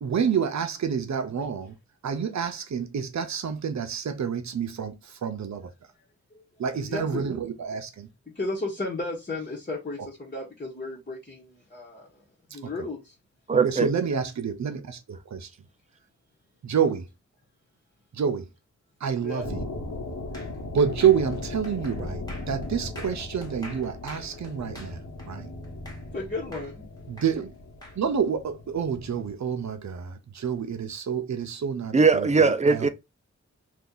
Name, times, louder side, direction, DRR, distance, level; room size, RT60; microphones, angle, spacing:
voice 1, 0.0-1.7 2.0-5.7 6.6-8.1 13.6-15.5 16.6-17.1 18.1-18.5 19.0-19.6 20.7-25.0 25.3-25.5 27.1-27.5 28.0-32.9, right 7 dB, 70° right, 0.6 m, -28 dB
voice 2, 6.8-7.4 8.3-12.2 12.5-13.1 19.2-19.5 26.1-26.9, left 2 dB, 30° left, 1.1 m, -34 dB
voice 3, 13.5-13.9 31.9-32.9, right 4 dB, 25° right, 0.4 m, -20 dB
sound 1, 19.4-29.3, left 2 dB, 90° left, 1.3 m, -38 dB
sound 2, 20.3-26.2 26.5-28.0, equal, 15° left, 1.2 m, -46 dB
2.8 x 2.4 x 3.6 m
wide cardioid pair, 70°, 29 cm